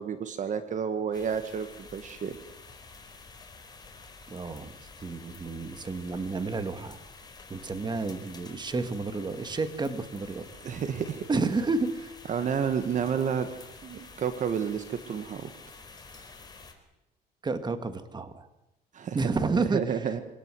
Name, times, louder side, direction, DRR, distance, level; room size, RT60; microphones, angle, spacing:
voice 1, 0.0-2.4 10.6-11.2 12.3-13.5 13.8-15.5 16.2-16.3 18.9-19.2 19.6-20.2, right 7 dB, 45° right, 9 dB, 1.7 m, -30 dB
sound 1, 1.1-16.7, left 4 dB, 25° left, 4.4 m, -49 dB
voice 2, 4.3-4.7 5.0-7.0 7.5-10.5 11.3-12.1 17.4-18.5 19.1-19.8, right 3 dB, 25° right, 10 dB, 2.1 m, -30 dB
25.0 x 18.0 x 7.8 m, 0.93 s
cardioid pair, 110°, 17 cm